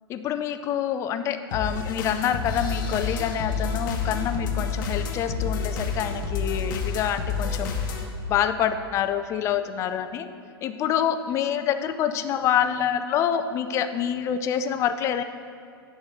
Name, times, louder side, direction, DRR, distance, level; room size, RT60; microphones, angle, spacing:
voice 1, 0.1-7.8 8.3-10.3 10.6-15.2, left 9 dB, 20° left, 10 dB, 0.4 m, -26 dB
sound 1, 1.5-8.0, left 5 dB, 50° left, 0.9 m, -29 dB
10.5 x 4.3 x 4.8 m, 2.6 s
figure-of-eight pair, 100°, 13 cm